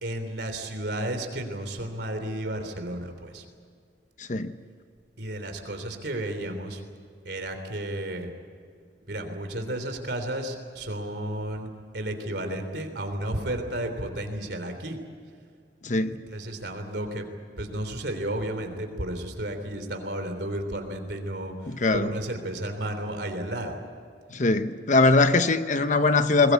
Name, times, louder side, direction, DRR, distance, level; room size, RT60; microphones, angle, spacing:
voice 1, 0.0-3.4 5.2-6.8 7.2-8.3 9.1-15.0 16.1-17.3 17.6-23.8 26.1-26.2, right 1 dB, 70° right, 3.4 m, -33 dB
voice 2, 15.8-16.2 21.7-22.1 24.3-26.5, left 3 dB, 45° left, 0.9 m, -21 dB
21.5 x 21.0 x 8.3 m
head